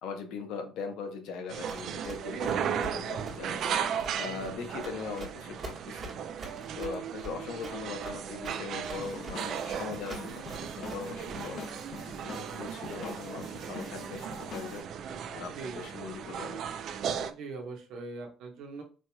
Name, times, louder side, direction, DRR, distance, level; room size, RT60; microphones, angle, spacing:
voice 1, 0.0-3.6 4.2-6.1 6.7-10.5 10.8-11.7 12.2-14.9 15.3-16.6, left 5 dB, 80° left, 6 dB, 0.8 m, -40 dB
sound 1, 1.5-17.3, right 8 dB, 60° right, 0.4 m, -36 dB
Run, 1.7-11.7, right 2 dB, 35° right, 1.3 m, -45 dB
voice 2, 4.3-4.6 15.5-15.8 17.3-18.8, right 3 dB, 75° right, 1 dB, 0.9 m, -41 dB
sound 2, 8.9-14.8, left 4 dB, 50° left, 0.9 m, -45 dB
4.3 x 3.0 x 2.2 m, 0.37 s
cardioid pair, 125°, 0 cm